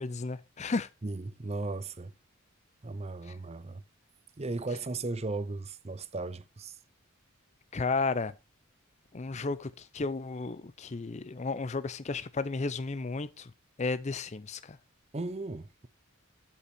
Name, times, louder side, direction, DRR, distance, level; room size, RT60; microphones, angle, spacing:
voice 1, 0.0-0.9 7.7-8.3 9.1-13.5 13.8-14.8, left 3 dB, 30° left, 0.5 m, -33 dB
voice 2, 1.0-2.1 2.8-3.8 4.4-6.8 15.1-15.9, right 3 dB, 30° right, 0.6 m, -36 dB
12.5 x 5.8 x 4.4 m
head